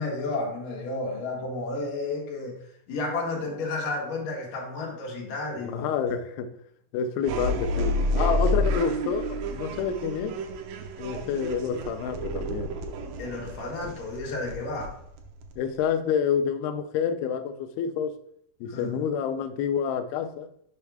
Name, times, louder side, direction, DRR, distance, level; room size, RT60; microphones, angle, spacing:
voice 1, 0.0-2.6 2.9-5.9 13.2-15.0 18.7-18.9, left 3 dB, 60° left, 2.7 m, -32 dB
voice 2, 5.7-6.6 6.9-10.4 11.0-12.8 15.6-18.1 18.6-20.5, left 7 dB, 85° left, 2.2 m, -28 dB
sound 1, 7.2-15.9, equal, 90° right, 1.9 m, -30 dB
7.0 x 5.5 x 3.4 m
omnidirectional pair, 4.9 m